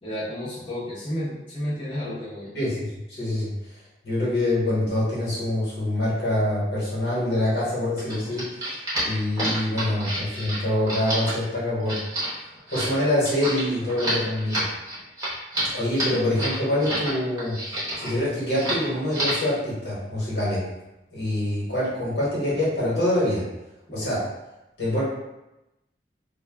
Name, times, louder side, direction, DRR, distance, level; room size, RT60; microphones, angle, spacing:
voice 1, 0.0-2.5 23.9-24.1, equal, 30° left, -11 dB, 0.7 m, -32 dB
voice 2, 2.5-3.5 4.0-8.4 9.0-12.0 12.7-14.7 15.7-17.6 18.0-20.6 21.1-23.4 23.9-24.2 24.8-25.0, left 1 dB, 75° left, -7 dB, 1.1 m, -25 dB
sound 1, 8.0-17.1 17.4-18.1 18.5-18.8 19.1-19.5, right 1 dB, 20° right, 0.8 m, -29 dB
2.2 x 2.2 x 3.3 m, 0.96 s
head